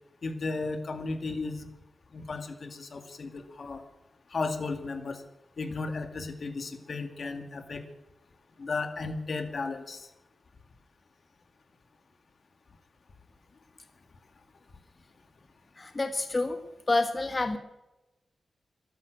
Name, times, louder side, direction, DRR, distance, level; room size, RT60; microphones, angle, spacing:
voice 1, 0.2-1.7 2.1-3.8 4.3-5.2 5.6-7.8 8.6-10.1, left 3 dB, 55° left, 7 dB, 2.1 m, -34 dB
voice 2, 15.8-16.6 16.9-17.6, left 2 dB, 30° left, 6 dB, 1.5 m, -28 dB
13.0 x 11.5 x 8.1 m, 0.97 s
wide cardioid pair, 95°, 0 cm